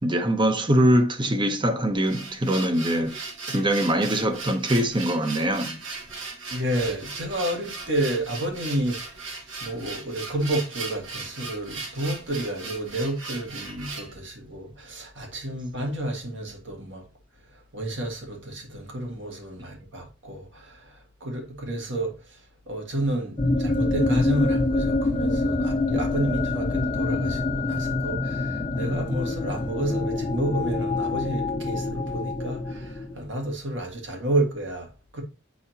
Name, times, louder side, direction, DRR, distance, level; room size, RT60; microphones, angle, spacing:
voice 1, 0.0-3.2 3.5-5.8, right 1 dB, 25° right, 0.7 m, -23 dB
sound 1, 1.8-14.1, right 4 dB, 85° right, 1.4 m, -37 dB
voice 2, 6.5-9.2 9.6-17.0 17.7-22.1 22.7-35.2, right 1 dB, 70° right, 1.9 m, -30 dB
sound 2, 23.4-33.2, left 2 dB, 25° left, 0.5 m, -26 dB
9.0 x 4.1 x 2.8 m
head